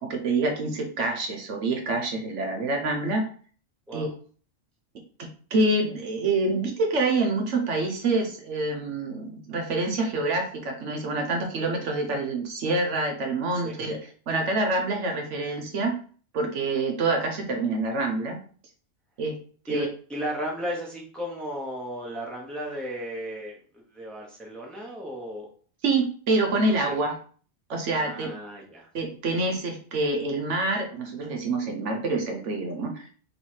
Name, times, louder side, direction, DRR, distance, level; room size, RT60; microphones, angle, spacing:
voice 1, 0.0-3.3 3.9-4.1 5.2-14.0 14.3-15.9 16.3-18.4 19.2-19.4 19.7-19.9 25.8-27.2 27.7-28.3 28.9-33.0, right 2 dB, 70° right, 3 dB, 1.0 m, -26 dB
voice 2, 19.7-25.5 26.5-26.6 26.9-27.0 27.9-28.9, equal, ahead, -2 dB, 0.9 m, -35 dB
3.2 x 3.0 x 4.4 m, 0.43 s
omnidirectional pair, 1.4 m